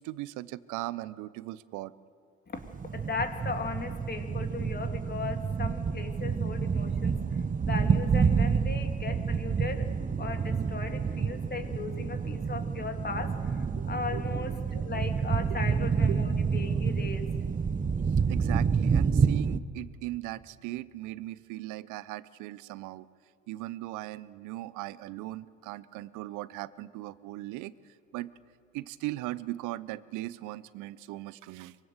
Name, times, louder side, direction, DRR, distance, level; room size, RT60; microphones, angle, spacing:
voice 1, 0.0-1.9 9.1-9.2 11.3-11.4 13.8-14.8 15.5-15.6 16.1-16.2 18.3-23.1 23.5-27.7 28.1-28.3 28.7-31.8, right 17 dB, 65° right, 18 dB, 0.8 m, -39 dB
voice 2, 2.5-7.2 7.7-9.9 10.2-17.3, left 4 dB, 30° left, 5 dB, 2.9 m, -37 dB
sound 1, 2.6-19.6, right 6 dB, 25° right, 0.9 m, -28 dB
24.0 x 22.5 x 6.8 m, 2.2 s
hypercardioid pair, 55°, 32 cm